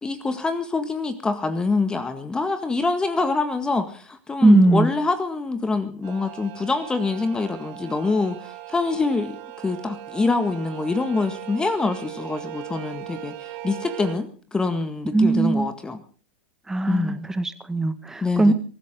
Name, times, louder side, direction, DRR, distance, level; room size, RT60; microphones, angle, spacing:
voice 1, 0.0-8.4 8.7-9.4 9.6-16.0 16.9-17.3 18.2-18.5, left 3 dB, 15° left, 10 dB, 1.8 m, -25 dB
voice 2, 4.4-4.9 15.1-15.7 16.7-18.5, right 2 dB, 10° right, 11 dB, 1.5 m, -19 dB
sound 1, 6.0-14.2, right 14 dB, 50° right, 2.4 m, -38 dB
23.0 x 14.5 x 3.8 m, 0.38 s
figure-of-eight pair, 95°, 6 cm